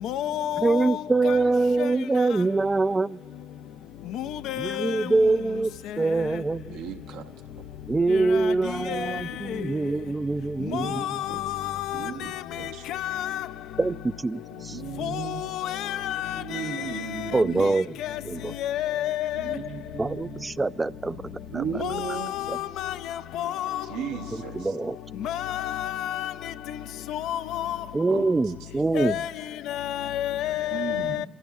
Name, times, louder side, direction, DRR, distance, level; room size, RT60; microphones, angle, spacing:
voice 1, 0.0-1.4 1.8-1.9 4.1-5.1 8.1-9.2 9.5-9.7 10.7-13.5 15.0-17.7 18.0-18.2 18.6-19.6 21.8-23.9 25.2-26.5 27.1-27.8 28.9-29.3 29.7-31.3, left 12 dB, 65° left, 0.4 m, -30 dB
voice 2, 0.6-3.2 4.6-5.7 6.0-6.8 7.9-11.2 13.8-14.8 17.3-17.9 18.2-18.5 20.0-21.2 21.5-21.6 22.5-22.6 24.6-24.9 27.9-29.2, right 3 dB, 25° right, 0.3 m, -24 dB
voice 3, 6.7-7.7 10.6-11.5 11.9-12.9 14.5-17.8 19.3-20.4 21.5-22.8 23.9-24.8 28.1-28.5 29.2-29.3 30.7-31.3, right 7 dB, 75° right, 1.0 m, -37 dB
26.0 x 15.0 x 2.4 m
figure-of-eight pair, 45°, 0 cm